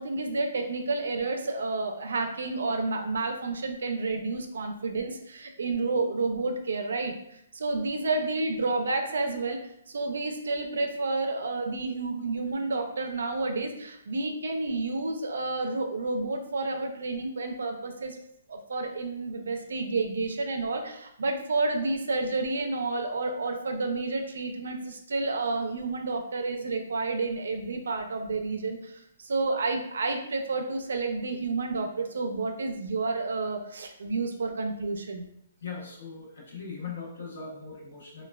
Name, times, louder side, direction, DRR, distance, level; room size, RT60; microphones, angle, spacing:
voice 1, 0.0-18.2 18.5-35.3, right 3 dB, 80° right, 4 dB, 0.4 m, -30 dB
voice 2, 35.6-38.3, left 5 dB, 55° left, -3 dB, 0.8 m, -39 dB
3.1 x 2.1 x 2.2 m, 0.76 s
hypercardioid pair, 175°, 0 cm